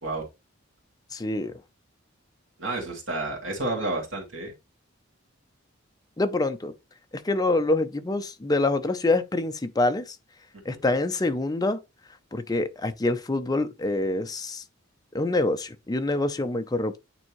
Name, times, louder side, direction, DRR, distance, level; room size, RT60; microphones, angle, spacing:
voice 1, 1.1-1.5 6.2-6.7 7.1-10.0 10.7-11.8 12.3-14.6 15.1-16.9, left 2 dB, 20° left, 0.5 m, -26 dB
voice 2, 2.6-4.5 10.7-10.8, right 2 dB, 70° right, 2.3 m, -30 dB
9.0 x 3.5 x 3.0 m
head